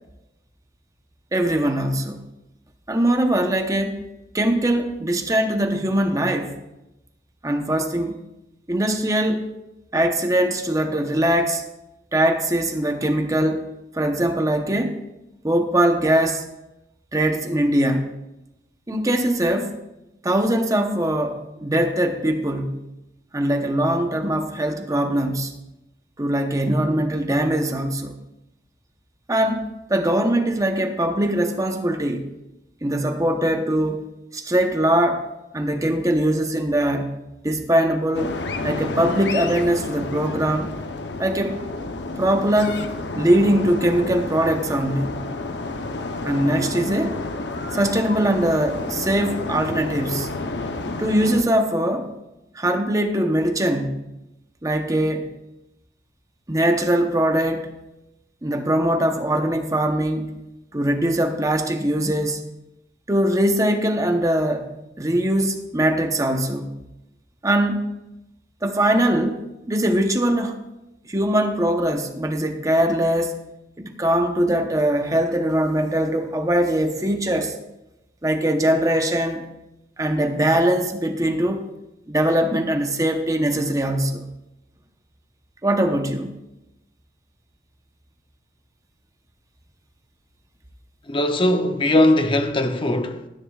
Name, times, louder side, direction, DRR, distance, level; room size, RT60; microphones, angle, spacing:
voice 1, 1.3-2.2 2.9-4.0 4.3-6.6 7.4-8.2 8.7-9.5 9.9-11.6 12.1-13.6 13.9-15.0 15.4-16.4 17.1-18.1 18.9-19.8 20.2-22.8 23.3-25.5 26.2-28.1 29.3-29.6 29.9-32.2 32.8-34.0 34.3-35.3 35.5-37.1 37.4-38.4 38.6-40.7 41.2-41.6 42.2-45.2 46.2-47.2 47.7-50.3 51.0-52.1 52.5-54.0 54.6-55.3 56.5-57.7 58.4-60.4 60.7-62.4 63.1-64.7 65.0-66.7 67.4-67.9 68.6-69.4 69.7-70.6 71.0-73.4 73.8-77.5 78.2-79.5 80.0-81.7 82.1-84.2 85.6-86.3, right 1 dB, 20° right, 0.9 m, -21 dB
sound 1, 38.1-51.4, left 2 dB, 80° left, 0.9 m, -30 dB
voice 2, 91.1-93.3, left 1 dB, 30° left, 0.7 m, -20 dB
19.5 x 10.5 x 2.4 m
head